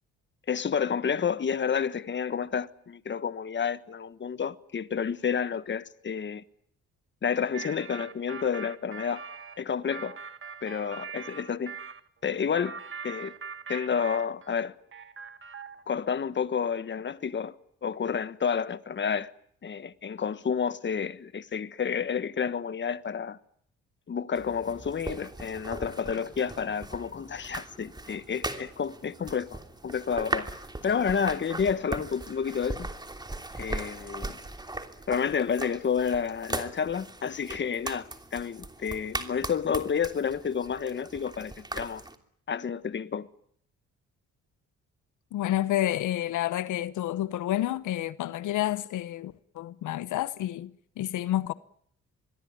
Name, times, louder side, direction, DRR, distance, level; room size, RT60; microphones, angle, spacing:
voice 1, 0.5-6.4 7.2-9.3 9.6-10.2 10.6-11.8 12.2-13.3 13.7-14.7 15.9-17.5 17.8-19.3 19.6-23.4 24.1-30.5 30.8-32.9 33.6-34.4 35.1-42.0 42.5-43.3, left 7 dB, 40° left, 1.4 m, -30 dB
sound 1, 7.5-12.0 12.5-14.6 14.9-15.9, right 5 dB, 40° right, 1.8 m, -42 dB
sound 2, 24.3-42.1, right 2 dB, 15° right, 3.0 m, -39 dB
voice 2, 45.3-51.5, left 13 dB, 80° left, 1.1 m, -29 dB
25.5 x 21.5 x 9.5 m
cardioid pair, 90°, 30 cm